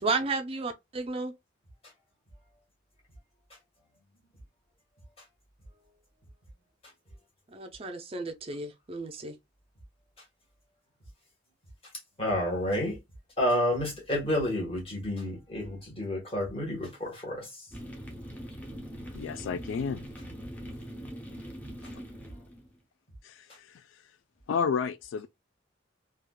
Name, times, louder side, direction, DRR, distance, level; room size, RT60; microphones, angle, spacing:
voice 1, 0.0-1.3 7.5-9.4, right 3 dB, 30° right, 0.4 m, -33 dB
voice 2, 12.2-13.0 13.4-17.5, left 1 dB, 30° left, 1.4 m, -30 dB
sound 1, 17.7-22.8, equal, 10° left, 0.8 m, -42 dB
voice 3, 19.1-20.1 23.2-23.8 24.5-25.3, left 6 dB, 80° left, 0.3 m, -31 dB
3.4 x 2.4 x 2.2 m
head